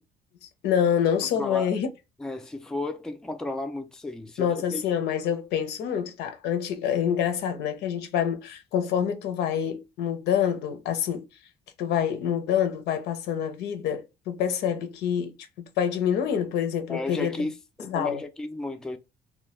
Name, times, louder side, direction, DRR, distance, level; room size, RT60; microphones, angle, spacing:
voice 1, 0.4-1.9 4.4-11.3 11.8-17.4 17.8-18.2, left 8 dB, 80° left, 0.6 m, -27 dB
voice 2, 1.4-1.7 2.2-4.8 16.9-19.0, left 2 dB, 5° left, 0.3 m, -33 dB
2.2 x 2.1 x 3.0 m
cardioid pair, 110°, 17 cm